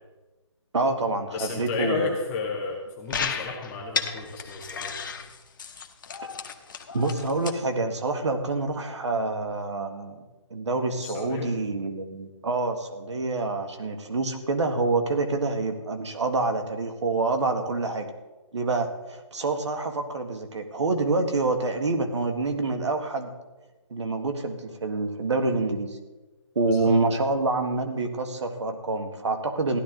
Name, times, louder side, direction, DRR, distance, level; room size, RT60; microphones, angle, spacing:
voice 1, 0.7-2.1 6.9-10.2 10.5-18.1 18.5-23.3 23.9-26.0 26.6-29.8, right 3 dB, 65° right, 6 dB, 1.8 m, -27 dB
voice 2, 1.3-4.9 11.0-11.5 26.7-26.9, left 4 dB, 5° left, -2 dB, 0.5 m, -32 dB
sound 1, 3.1-7.5, left 6 dB, 40° left, 1.1 m, -34 dB
15.5 x 11.5 x 3.9 m, 1.2 s
hypercardioid pair, 175°, 16 cm